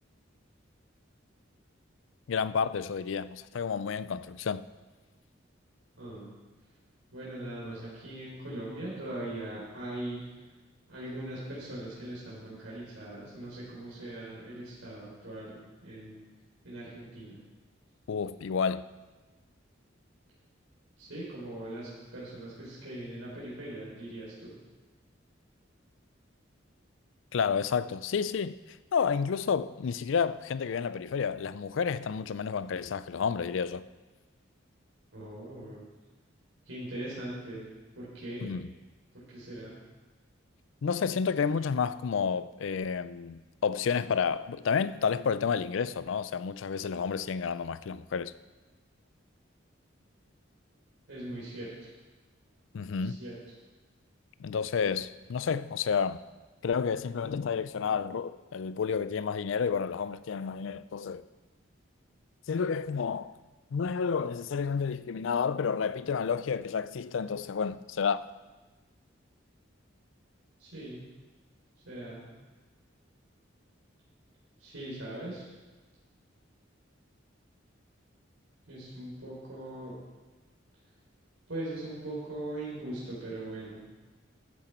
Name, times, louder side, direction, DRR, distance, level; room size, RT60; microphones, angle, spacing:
voice 1, 2.3-4.7 18.1-18.8 27.3-28.6 28.9-33.8 38.4-38.7 40.8-48.3 52.7-53.2 54.4-56.2 56.6-61.2 62.5-63.3 63.7-68.3, left 6 dB, 75° left, 0.4 m, -30 dB
voice 2, 6.0-6.3 7.1-10.2 10.9-15.6 15.8-16.2 16.6-17.4 21.0-24.6 35.1-35.9 36.7-37.7 38.0-38.5 39.1-39.8 51.1-51.7 53.0-53.3 70.6-71.0 71.9-72.3 74.6-75.4 78.7-80.0 81.5-83.8, right 1 dB, 90° right, 3.7 m, -40 dB
13.5 x 9.0 x 4.4 m
head